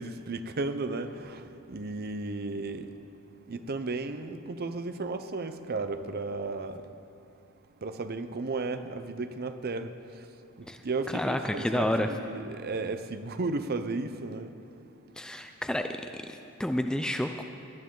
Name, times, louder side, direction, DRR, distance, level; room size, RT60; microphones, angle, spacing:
voice 1, 0.0-1.4 1.7-2.9 3.5-6.8 7.8-9.9 10.8-14.5, right 3 dB, 45° right, 10 dB, 0.6 m, -34 dB
voice 2, 11.1-12.1 15.2-17.4, left 1 dB, 5° left, 6 dB, 0.4 m, -30 dB
18.5 x 11.0 x 3.8 m, 2.6 s
head